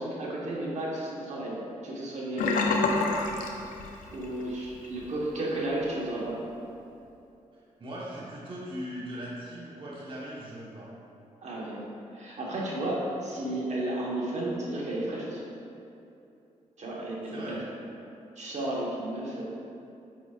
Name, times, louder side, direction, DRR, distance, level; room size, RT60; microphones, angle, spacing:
voice 1, 0.0-2.7 4.1-6.4 11.4-15.4 16.8-17.6 18.4-19.4, right 1 dB, 55° right, -4 dB, 1.4 m, -33 dB
Sink (filling or washing), 2.4-4.4 4.7-5.0 5.4-5.5, left 3 dB, 85° left, 0.6 m, -27 dB
voice 2, 7.8-10.9 17.3-17.6, equal, 40° right, -6 dB, 1.2 m, -39 dB
7.9 x 5.6 x 2.4 m, 2.7 s
cardioid pair, 70°, 14 cm